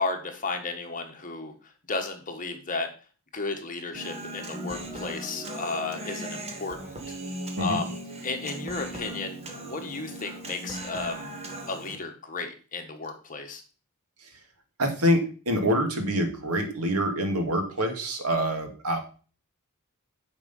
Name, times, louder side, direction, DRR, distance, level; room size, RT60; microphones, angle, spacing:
voice 1, 0.0-1.5 1.9-2.9 3.3-7.2 7.6-7.9 8.2-11.3 11.7-13.6, left 3 dB, 35° left, 4 dB, 1.4 m, -33 dB
Human voice, 4.0-12.0, right 1 dB, 30° right, 1.5 m, -38 dB
voice 2, 14.8-19.0, equal, 85° right, 5 dB, 2.0 m, -26 dB
9.4 x 5.1 x 5.4 m, 0.38 s
head